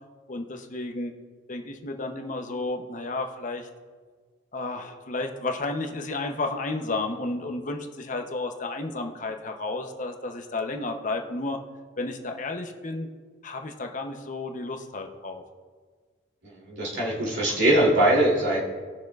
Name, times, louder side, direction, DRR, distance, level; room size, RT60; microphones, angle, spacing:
voice 1, 0.3-1.1 1.5-3.7 4.5-11.6 12.0-13.1 13.4-15.4, left 2 dB, 40° left, 4 dB, 0.7 m, -32 dB
voice 2, 16.4-18.6, right 1 dB, 60° right, -5 dB, 3.0 m, -22 dB
19.0 x 6.4 x 2.4 m, 1.5 s
head